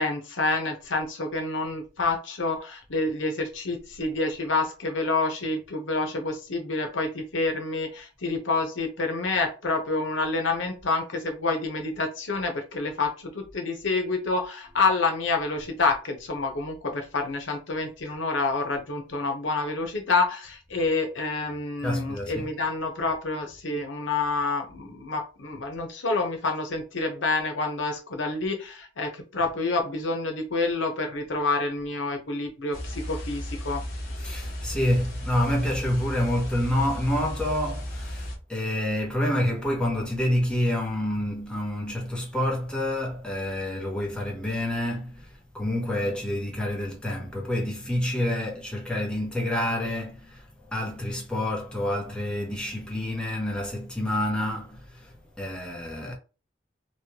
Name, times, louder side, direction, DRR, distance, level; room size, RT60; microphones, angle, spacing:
voice 1, 0.0-33.8, left 3 dB, 90° left, 0.8 m, -28 dB
voice 2, 21.8-22.5 34.2-56.2, left 1 dB, 5° left, 0.8 m, -28 dB
sound 1, 32.7-38.4, equal, 55° left, 1.0 m, -35 dB
3.2 x 2.2 x 2.9 m
head